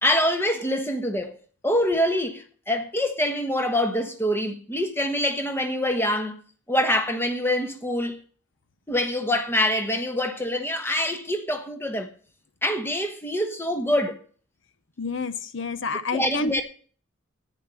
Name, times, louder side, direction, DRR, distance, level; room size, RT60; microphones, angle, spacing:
voice 1, 0.0-1.4 1.6-6.4 6.7-8.2 8.9-12.1 12.6-14.2 16.1-16.6, left 1 dB, 10° left, 1.3 m, -25 dB
voice 2, 15.0-16.6, left 4 dB, 65° left, 0.7 m, -29 dB
10.5 x 9.3 x 5.5 m
head